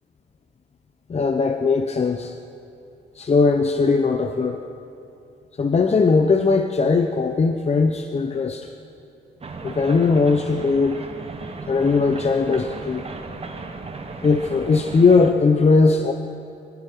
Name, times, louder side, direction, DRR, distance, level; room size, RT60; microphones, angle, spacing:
voice 1, 1.1-2.3 3.1-4.6 5.6-8.7 9.6-11.0 11.7-13.0 14.2-16.1, left 4 dB, 30° left, 5 dB, 0.9 m, -19 dB
sound 1, 9.4-15.3, right 3 dB, 30° right, 1.4 m, -35 dB
20.5 x 14.5 x 4.6 m, 2.7 s
cardioid pair, 90°, 20 cm